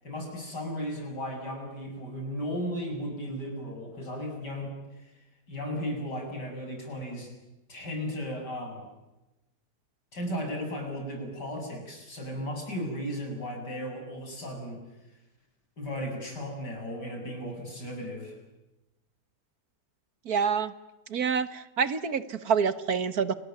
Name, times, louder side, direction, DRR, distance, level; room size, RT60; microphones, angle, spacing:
voice 1, 0.0-4.7 5.5-7.3 7.7-8.9 10.1-14.8 15.8-18.3, equal, 85° left, 2 dB, 8.7 m, -35 dB
voice 2, 20.2-20.7 21.1-23.3, right 6 dB, 65° right, 14 dB, 1.8 m, -27 dB
29.5 x 20.5 x 9.4 m, 1.0 s
omnidirectional pair, 1.8 m